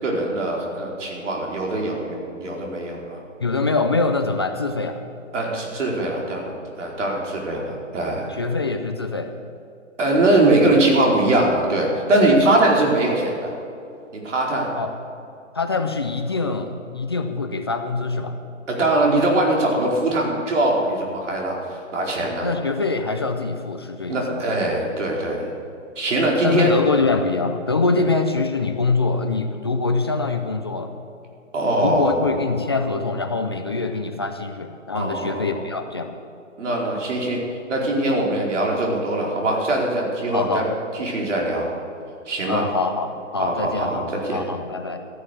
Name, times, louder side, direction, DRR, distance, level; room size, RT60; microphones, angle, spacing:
voice 1, 0.0-3.2 5.3-8.3 10.0-13.5 14.1-14.7 18.7-22.5 24.1-25.5 26.0-26.7 31.5-32.3 34.9-35.5 36.6-37.4 37.7-40.6 40.9-41.7 42.3-42.7 43.4-44.4, right 1 dB, 65° right, -1 dB, 4.6 m, -22 dB
voice 2, 3.4-5.0 8.3-9.3 14.8-14.9 15.5-18.4 22.2-24.4 26.4-31.0 31.8-36.2 40.3-40.6 42.5-44.0 44.3-45.0, left 3 dB, 20° left, 6 dB, 0.4 m, -24 dB
14.5 x 11.0 x 6.8 m, 2.6 s
hypercardioid pair, 155°, 39 cm